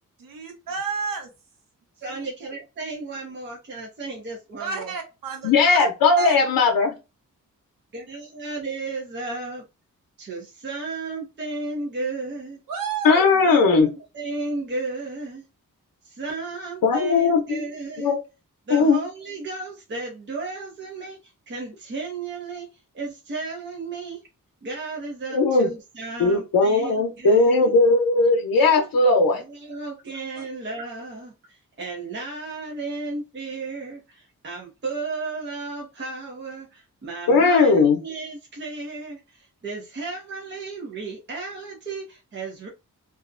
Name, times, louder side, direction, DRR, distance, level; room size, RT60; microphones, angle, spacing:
voice 1, 0.2-1.3 2.1-2.2 4.6-5.9 6.2-6.4 12.7-13.4 30.4-30.5, right 5 dB, 75° right, 0.9 m, -31 dB
voice 2, 2.0-4.9 7.9-9.6 10.2-12.6 13.4-15.4 16.0-18.1 18.7-22.7 22.9-24.2 24.6-27.7 29.2-42.7, right 3 dB, 35° right, 0.6 m, -34 dB
voice 3, 5.4-6.9 13.0-13.9 16.8-17.6 18.0-18.2 18.7-19.0 25.3-25.7 26.2-29.4 37.3-38.0, left 3 dB, 85° left, 0.6 m, -18 dB
2.4 x 2.0 x 2.4 m
wide cardioid pair, 135°, 34 cm